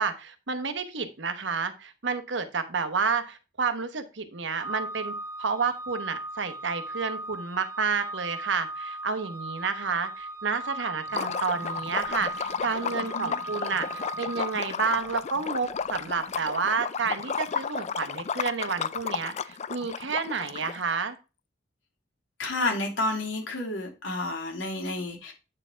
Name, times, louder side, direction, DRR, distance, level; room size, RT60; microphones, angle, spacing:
voice 1, 0.0-5.1 5.4-21.2, right 5 dB, 75° right, 1.0 m, -30 dB
Organ, 4.6-15.3, right 2 dB, 15° right, 1.7 m, -38 dB
Liquid, 11.1-21.0, left 6 dB, 35° left, 0.3 m, -33 dB
voice 2, 22.4-25.3, left 2 dB, 85° left, 2.7 m, -30 dB
8.8 x 4.4 x 4.5 m
head